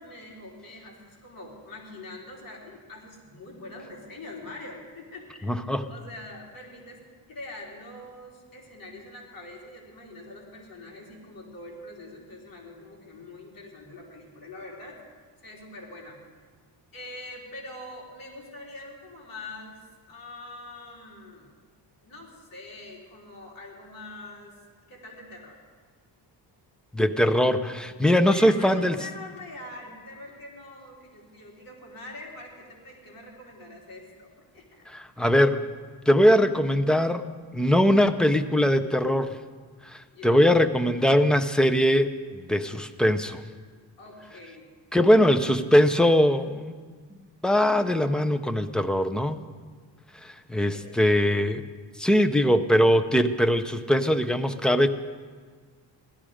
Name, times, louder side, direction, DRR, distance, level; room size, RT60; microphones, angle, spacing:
voice 1, 0.0-5.6 5.9-7.0 7.3-15.0 15.4-16.2 16.9-21.5 22.0-24.6 24.9-25.6 28.3-34.9 40.1-40.5 44.0-44.7 44.9-45.2 50.7-51.1, left 2 dB, 50° left, -3 dB, 3.6 m, -44 dB
voice 2, 5.4-5.9 26.9-28.9 34.9-35.7 36.1-37.2 37.5-39.4 39.9-43.4 44.9-46.8 47.4-49.4 50.2-51.7 52.0-54.9, equal, ahead, 7 dB, 0.5 m, -21 dB
16.5 x 12.5 x 5.0 m, 1.6 s
cardioid pair, 125°, 44 cm